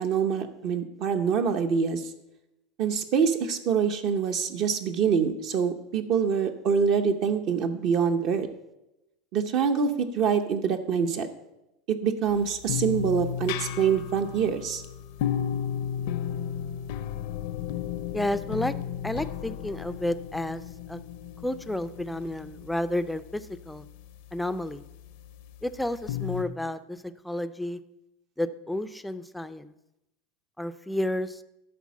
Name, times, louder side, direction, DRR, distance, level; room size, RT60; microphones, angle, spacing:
voice 1, 0.0-2.0 2.8-8.5 9.3-11.3 11.9-14.8, right 6 dB, 45° right, 7 dB, 0.7 m, -25 dB
sound 1, 12.7-23.0 26.1-26.4, left 9 dB, 65° left, 0.5 m, -33 dB
voice 2, 18.1-18.7 19.0-20.6 20.9-21.0 21.4-23.9 24.3-24.8 25.6-27.0 27.2-27.8 28.4-29.7 30.6-31.4, left 1 dB, 5° left, 11 dB, 0.4 m, -31 dB
11.0 x 4.2 x 7.3 m, 0.92 s
supercardioid pair, 150°, 0 cm